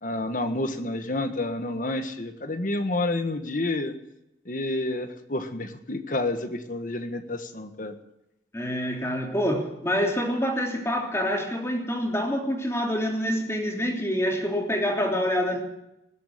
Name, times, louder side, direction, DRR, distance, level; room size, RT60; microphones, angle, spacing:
voice 1, 0.0-3.9 4.4-7.9, left 2 dB, 50° left, 8 dB, 1.6 m, -29 dB
voice 2, 8.5-15.6, equal, 15° left, 1 dB, 3.2 m, -26 dB
20.5 x 8.1 x 8.4 m, 0.85 s
head